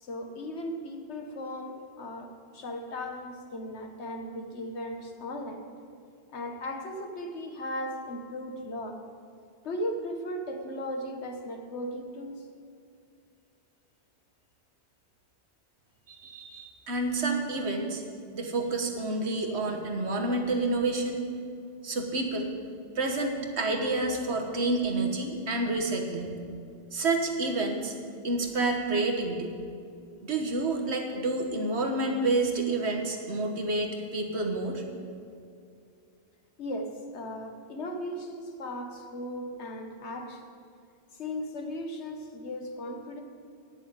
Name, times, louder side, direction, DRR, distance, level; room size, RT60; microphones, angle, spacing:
voice 1, 0.0-5.7 6.3-9.1 9.6-12.5 36.6-40.5 41.1-43.2, left 1 dB, 90° left, 4 dB, 1.4 m, -37 dB
voice 2, 16.1-18.0 18.3-21.2 21.8-22.5 22.9-26.4 26.9-27.9 28.2-29.6 30.2-34.8, right 2 dB, 75° right, 3 dB, 1.5 m, -29 dB
9.7 x 7.1 x 8.7 m, 2.4 s
omnidirectional pair, 1.1 m